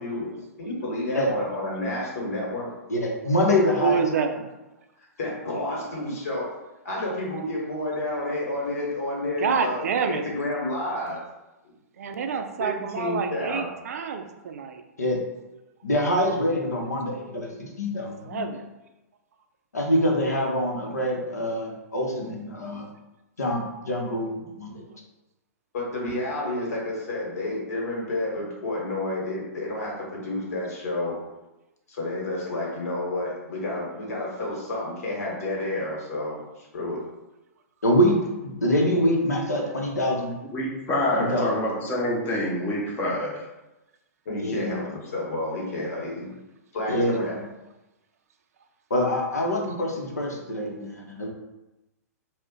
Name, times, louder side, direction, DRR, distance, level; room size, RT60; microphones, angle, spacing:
voice 1, 0.0-2.7 5.2-6.5 6.8-11.2 12.6-13.6 25.7-31.2 31.9-37.0 44.2-46.3 46.7-47.4, left 2 dB, 65° left, -3 dB, 1.1 m, -30 dB
voice 2, 2.9-4.0 15.0-15.2 15.8-18.5 19.7-22.9 23.4-24.8 37.8-40.3 41.1-41.5 44.4-44.7 46.9-47.5 48.9-51.3, equal, 85° left, 0 dB, 0.7 m, -25 dB
voice 3, 3.8-4.4 9.4-10.2 12.0-14.8 18.3-18.7, right 6 dB, 65° right, 6 dB, 0.4 m, -27 dB
voice 4, 40.5-43.5, left 1 dB, 25° left, -3 dB, 0.7 m, -26 dB
2.4 x 2.1 x 3.7 m, 1.0 s
hypercardioid pair, 115°, 9 cm